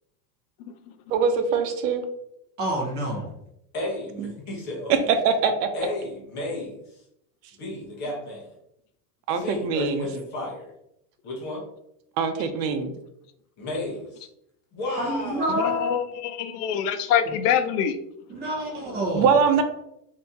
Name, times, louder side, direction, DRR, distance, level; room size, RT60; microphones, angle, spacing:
voice 1, 1.1-2.0 4.2-4.3 4.9-5.7 9.3-10.1 12.2-12.9 19.1-19.6, right 6 dB, 85° right, 7 dB, 0.7 m, -22 dB
voice 2, 2.6-3.3 15.0-15.9 18.3-19.4, equal, 20° right, -2 dB, 0.6 m, -28 dB
voice 3, 3.7-5.1 5.7-7.0 7.6-8.5 9.3-10.7 11.2-11.6 13.6-14.3 14.7-15.7, left 1 dB, 25° left, -3 dB, 0.7 m, -33 dB
voice 4, 15.6-18.0, left 8 dB, 75° left, 9 dB, 0.5 m, -24 dB
2.8 x 2.6 x 3.4 m, 0.79 s
supercardioid pair, 175°, 47 cm